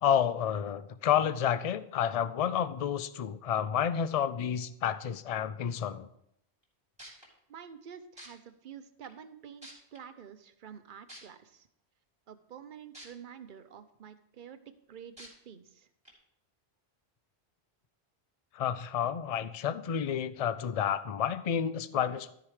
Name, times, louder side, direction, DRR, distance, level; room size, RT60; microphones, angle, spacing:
voice 1, 0.0-6.1 18.5-22.3, left 9 dB, 50° left, 14 dB, 0.4 m, -30 dB
sound 1, 6.6-6.7 7.0-7.3 8.2-8.3 9.0-9.1 9.6-10.0 11.1-11.2 12.9-13.0 13.6-13.7 15.2-15.3 16.0-16.1, equal, 5° right, 3.0 m, -47 dB
voice 2, 7.5-11.7 12.3-14.6 14.9-15.9, right 8 dB, 55° right, 11 dB, 0.8 m, -49 dB
13.0 x 4.9 x 4.9 m, 0.73 s
omnidirectional pair, 1.1 m